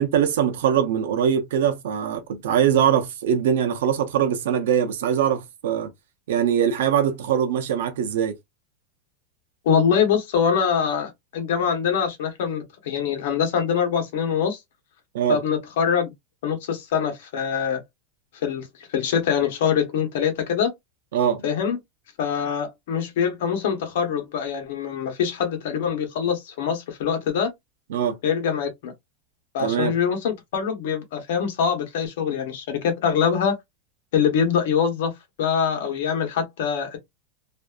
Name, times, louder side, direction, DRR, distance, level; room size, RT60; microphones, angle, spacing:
voice 1, 0.0-5.9 6.3-8.4 15.1-15.4 21.1-21.4 27.9-28.2 29.6-29.9, right 9 dB, 80° right, 0.6 m, -22 dB
voice 2, 9.6-14.6 15.3-16.1 16.4-17.8 18.3-20.7 21.4-21.8 22.2-27.5 28.2-28.9 29.5-33.5 34.1-35.1 35.4-37.0, left 7 dB, 70° left, 0.9 m, -24 dB
2.6 x 2.2 x 2.4 m
supercardioid pair, 160°, 0 cm